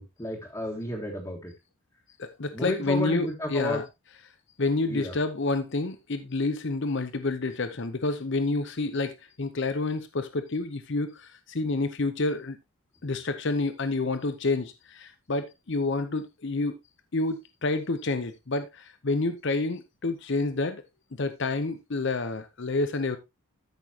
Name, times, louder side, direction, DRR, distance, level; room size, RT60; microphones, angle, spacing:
voice 1, 0.0-1.5 2.5-3.8 4.9-5.1, left 1 dB, 15° left, 1.7 m, -32 dB
voice 2, 2.2-3.8 4.6-12.6 13.0-16.8 17.1-20.8 21.2-23.2, left 3 dB, 50° left, 0.7 m, -29 dB
13.5 x 6.1 x 2.8 m
head